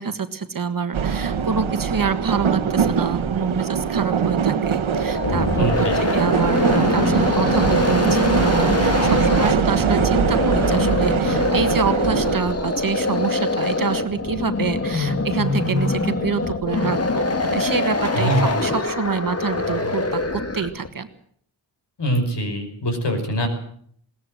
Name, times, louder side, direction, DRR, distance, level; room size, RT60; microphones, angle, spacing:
voice 1, 0.0-21.1, right 5 dB, 45° right, 9 dB, 1.6 m, -26 dB
sound 1, 0.9-12.4, right 7 dB, 75° right, 1.5 m, -22 dB
sound 2, 4.8-20.9, left 2 dB, 30° left, 2.1 m, -23 dB
voice 2, 5.5-6.0 18.1-18.6 22.0-23.5, right 1 dB, 55° left, 6 dB, 5.5 m, -23 dB
21.5 x 18.0 x 7.7 m, 0.64 s
wide cardioid pair, 170°, 48 cm